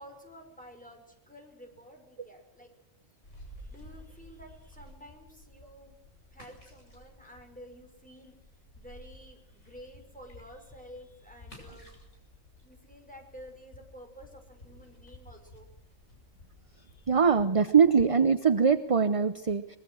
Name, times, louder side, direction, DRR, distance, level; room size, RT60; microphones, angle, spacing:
voice 1, 0.0-2.7 3.6-5.9 6.3-12.1 12.6-15.7, equal, 5° left, 2 dB, 5.7 m, -51 dB
sound 1, 3.2-17.3, left 1 dB, 65° left, 7.2 m, -53 dB
voice 2, 17.1-19.8, right 6 dB, 30° right, 11 dB, 0.8 m, -22 dB
23.5 x 22.0 x 6.4 m, 0.84 s
omnidirectional pair, 1.4 m